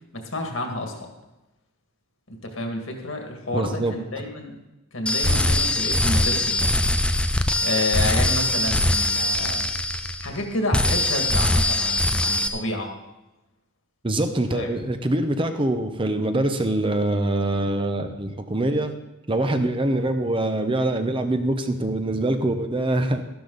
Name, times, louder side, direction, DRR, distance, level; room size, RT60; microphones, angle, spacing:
voice 1, 0.1-1.1 2.3-4.6 4.9-6.9 7.6-9.7 10.2-12.9 14.5-14.7, left 2 dB, 65° left, 2 dB, 2.1 m, -30 dB
voice 2, 3.5-3.9 14.0-18.9 19.3-23.2, right 1 dB, 25° right, 7 dB, 0.7 m, -24 dB
sound 1, 5.1-10.4 10.7-12.5, left 1 dB, 5° left, 0.4 m, -22 dB
12.5 x 12.0 x 4.0 m, 1.0 s
head